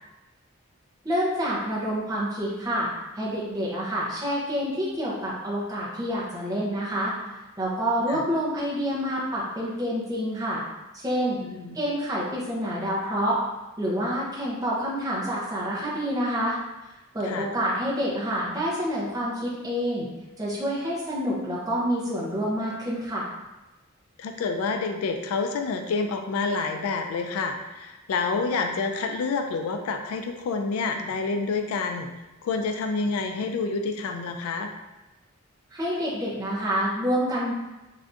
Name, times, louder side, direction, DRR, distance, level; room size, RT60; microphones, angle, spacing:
voice 1, 1.0-2.9 3.1-7.1 7.6-10.6 10.9-11.4 11.7-13.4 13.8-16.6 17.1-20.1 20.4-23.3 35.7-37.5, equal, 15° right, -6 dB, 0.6 m, -27 dB
voice 2, 11.4-11.8 17.2-17.5 24.2-32.1 32.4-34.7, left 4 dB, 80° left, 5 dB, 0.3 m, -28 dB
3.4 x 2.5 x 2.5 m, 1.1 s
head